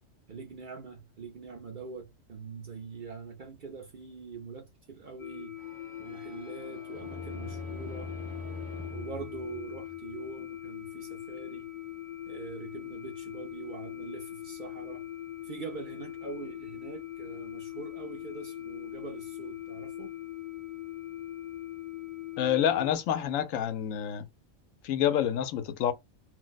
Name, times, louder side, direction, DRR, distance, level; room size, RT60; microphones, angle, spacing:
voice 1, 0.3-5.6 6.0-8.1 8.9-11.7 12.3-15.1 15.4-20.1, right 4 dB, 55° right, 0.5 m, -43 dB
sound 1, 5.2-22.9, left 13 dB, 60° left, 0.5 m, -41 dB
sound 2, 5.6-10.3, left 2 dB, 30° right, 0.8 m, -43 dB
voice 2, 22.4-24.3 24.8-25.9, left 10 dB, 90° left, 1.0 m, -28 dB
2.5 x 2.1 x 3.9 m
omnidirectional pair, 1.3 m